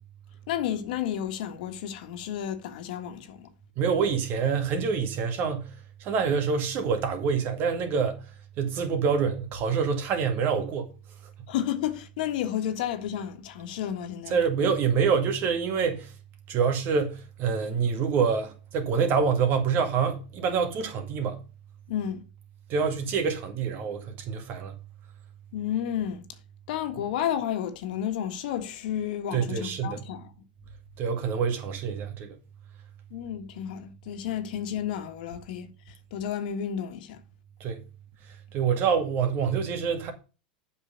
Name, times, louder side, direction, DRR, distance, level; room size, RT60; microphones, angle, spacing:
voice 1, 0.5-3.5 11.5-14.4 21.9-22.2 25.5-26.2 26.7-30.3 33.1-35.7 36.1-37.2, left 10 dB, 70° left, 1.7 m, -31 dB
voice 2, 3.8-5.7 6.0-8.2 8.6-10.9 14.3-16.1 16.5-21.4 22.7-24.7 29.3-30.0 31.0-32.3 37.6-37.8 38.5-40.1, right 6 dB, 45° right, 2.1 m, -26 dB
8.0 x 5.9 x 5.3 m
supercardioid pair, 125°, 5 cm